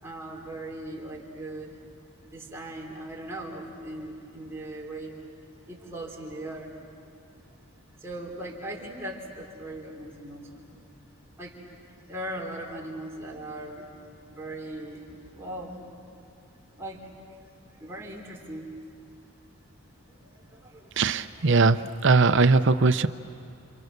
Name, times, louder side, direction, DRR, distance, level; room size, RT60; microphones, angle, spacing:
voice 1, 0.0-1.8 2.3-5.1 5.7-6.7 8.0-10.7 11.4-11.5 12.1-13.9 14.3-15.0 15.3-15.8 16.8-17.0 17.8-18.7 20.5-20.9, right 1 dB, 10° right, -2 dB, 3.5 m, -38 dB
voice 2, 21.0-23.1, right 4 dB, 60° right, 10 dB, 0.7 m, -20 dB
28.5 x 28.0 x 6.7 m, 2.6 s
head